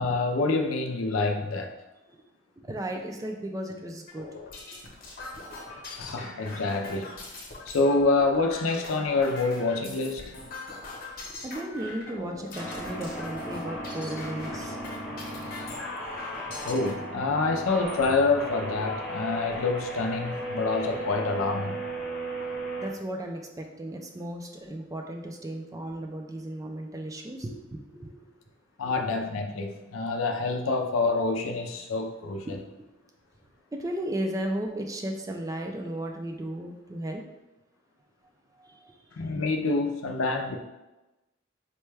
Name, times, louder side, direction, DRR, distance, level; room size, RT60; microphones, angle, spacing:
voice 1, 0.0-1.7 5.9-7.1 7.7-10.3 16.6-21.8 28.8-32.6 39.1-40.6, left 3 dB, 85° left, 4 dB, 0.5 m, -27 dB
voice 2, 2.6-4.3 11.3-14.8 16.4-17.0 22.3-22.4 22.8-28.3 28.8-29.1 32.5-32.6 33.7-37.2 38.6-38.9, right 1 dB, 15° right, 3 dB, 0.3 m, -35 dB
sound 1, 4.1-16.9 17.6-18.1 18.7-18.8 19.1-19.7, left 3 dB, 45° left, 0.9 m, -42 dB
sound 2, 12.6-22.9, right 1 dB, 5° left, 0.8 m, -36 dB
4.2 x 2.2 x 3.2 m, 1.0 s
head